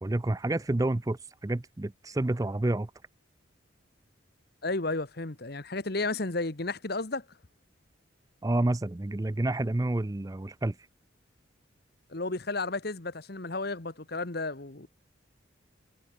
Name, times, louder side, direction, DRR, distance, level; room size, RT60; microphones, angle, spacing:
voice 1, 0.0-2.9 8.4-10.8, right 2 dB, 15° right, 0.4 m, -29 dB
voice 2, 4.6-7.2 12.1-14.9, left 3 dB, 50° left, 1.4 m, -33 dB
head